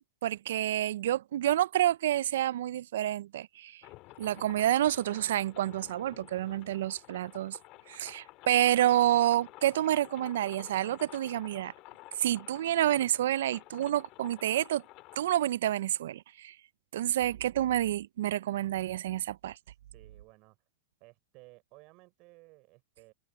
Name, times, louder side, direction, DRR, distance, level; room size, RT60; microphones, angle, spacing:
voice 1, 0.2-3.8 4.2-7.6 7.9-11.7 12.2-14.8 15.2-16.5 16.9-19.5, right 12 dB, 75° right, 0.4 m, -28 dB
sound 1, 3.8-15.2, left 20 dB, 45° left, 1.8 m, -51 dB
voice 2, 19.6-20.6 21.0-23.1, right 24 dB, 45° right, 5.7 m, -57 dB
open air
hypercardioid pair, 130°, 0 cm